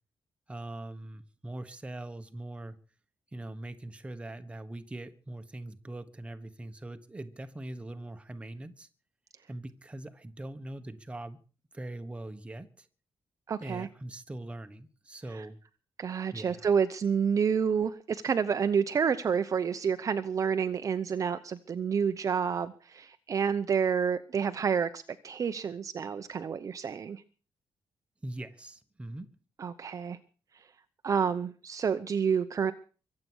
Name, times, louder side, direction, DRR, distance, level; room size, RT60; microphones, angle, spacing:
voice 1, 0.5-2.8 3.3-8.9 9.5-11.4 11.7-12.9 13.6-15.6 16.3-16.7 28.2-29.3, right 1 dB, 15° right, 9 dB, 1.3 m, -42 dB
voice 2, 13.5-13.9 15.3-15.4 16.0-27.2 29.6-30.2 31.0-32.7, right 6 dB, 40° right, 10 dB, 0.8 m, -29 dB
23.5 x 8.5 x 6.3 m, 0.38 s
wide cardioid pair, 170°, 9 cm